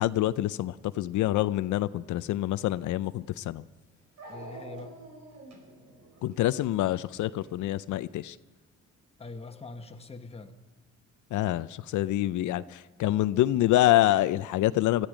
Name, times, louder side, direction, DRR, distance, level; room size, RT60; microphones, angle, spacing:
voice 1, 0.0-3.6 6.2-8.4 11.3-15.1, left 14 dB, 75° left, 15 dB, 0.5 m, -26 dB
Dog, 3.1-3.2 4.2-7.6, right 2 dB, 60° right, 4.7 m, -47 dB
voice 2, 4.3-5.0 9.2-10.5, left 3 dB, 20° left, 5 dB, 1.3 m, -43 dB
20.0 x 14.0 x 5.1 m, 1.3 s
cardioid pair, 90°, 30 cm